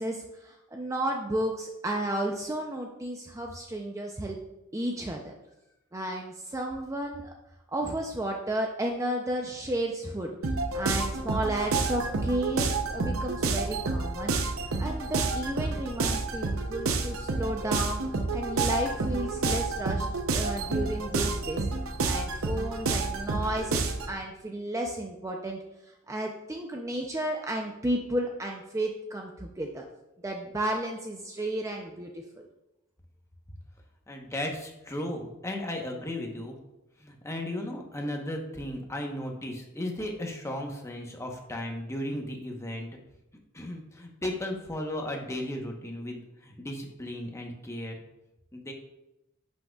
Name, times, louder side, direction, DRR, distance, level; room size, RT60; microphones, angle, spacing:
voice 1, 0.0-4.4 4.7-5.3 5.9-7.3 7.7-10.3 10.7-14.4 14.8-18.0 18.3-20.1 20.3-21.7 22.0-25.6 26.1-29.8 30.2-32.5, right 1 dB, 15° right, 1 dB, 0.5 m, -33 dB
sound 1, 10.4-24.1, right 3 dB, 75° right, 0.7 m, -29 dB
voice 2, 34.1-36.5 37.0-42.9 43.5-47.9 48.5-48.7, left 1 dB, 15° left, 1 dB, 1.0 m, -35 dB
10.0 x 6.2 x 2.4 m, 0.92 s
head